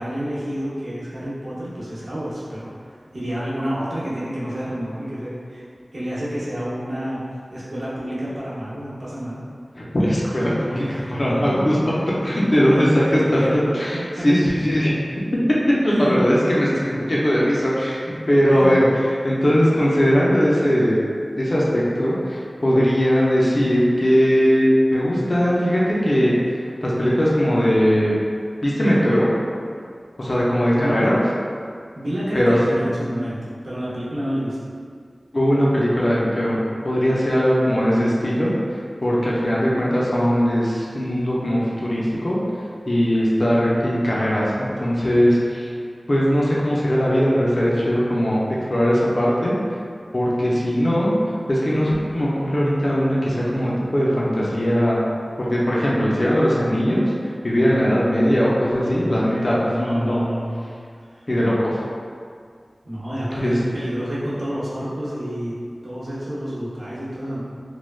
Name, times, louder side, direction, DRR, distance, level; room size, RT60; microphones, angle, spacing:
voice 1, 0.0-2.7 3.1-5.6 5.9-7.2 7.5-9.4 10.8-11.1 12.7-14.3 15.9-16.2 18.5-18.7 30.7-31.0 32.0-33.4 33.6-34.6 58.8-60.6 62.8-65.6 65.8-67.4, equal, 80° right, -10 dB, 0.7 m, -29 dB
voice 2, 9.8-11.8 12.2-13.5 13.7-14.9 15.8-21.0 21.3-26.4 26.8-28.1 28.6-29.3 30.2-31.2 32.3-32.8 35.3-36.6 36.8-38.5 39.0-42.4 42.9-45.7 46.1-48.4 48.7-49.6 50.1-51.1 51.5-55.0 55.4-57.1 57.4-60.2 61.3-61.8 63.4-63.6, equal, 55° left, -6 dB, 0.5 m, -19 dB
3.1 x 2.1 x 2.2 m, 2.2 s
wide cardioid pair, 55°, 0 cm